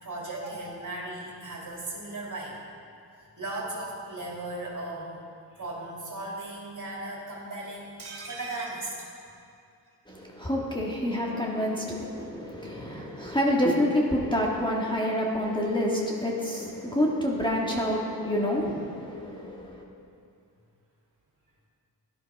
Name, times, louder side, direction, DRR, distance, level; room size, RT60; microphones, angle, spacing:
voice 1, 0.0-2.6 3.2-5.2 5.5-8.9, right 2 dB, 45° right, -4 dB, 2.7 m, -37 dB
sound 1, 8.0-10.0 10.3-10.4 10.6-10.7, right 3 dB, 65° right, 2.3 m, -44 dB
voice 2, 10.1-19.8, equal, 10° left, -3 dB, 1.6 m, -28 dB
12.0 x 11.0 x 3.4 m, 2.5 s
cardioid pair, 60°, 41 cm